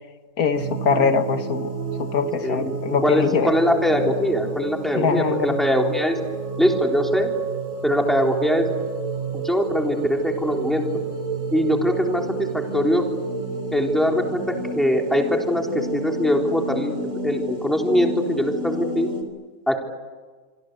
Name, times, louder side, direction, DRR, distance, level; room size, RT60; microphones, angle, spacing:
voice 1, 0.4-1.7 2.0-3.5 5.0-5.6, left 6 dB, 85° left, 8 dB, 1.9 m, -22 dB
sound 1, 0.5-19.2, right 3 dB, 60° right, 4.1 m, -30 dB
voice 2, 3.0-6.2 6.6-7.3 7.8-8.7 9.3-10.8 11.5-13.1 13.7-19.1 19.7-19.8, equal, ahead, 1 dB, 3.6 m, -22 dB
26.0 x 25.5 x 8.1 m, 1.4 s
omnidirectional pair, 1.5 m